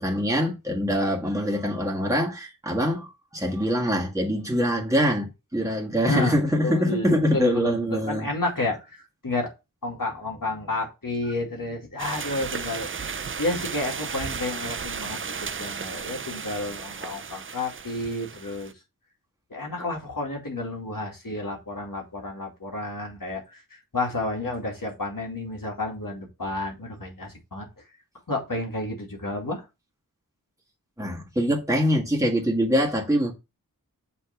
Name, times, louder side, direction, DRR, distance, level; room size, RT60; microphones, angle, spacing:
voice 1, 0.0-8.3 31.0-33.3, equal, 10° right, 1.7 m, -24 dB
voice 2, 6.0-8.8 9.2-9.5 9.8-12.9 13.4-18.7 19.5-27.7 28.3-29.6, left 2 dB, 70° left, 2.3 m, -31 dB
sound 1, 12.0-18.7, right 6 dB, 35° right, 0.4 m, -34 dB
6.9 x 3.3 x 5.8 m
wide cardioid pair, 45°, 35 cm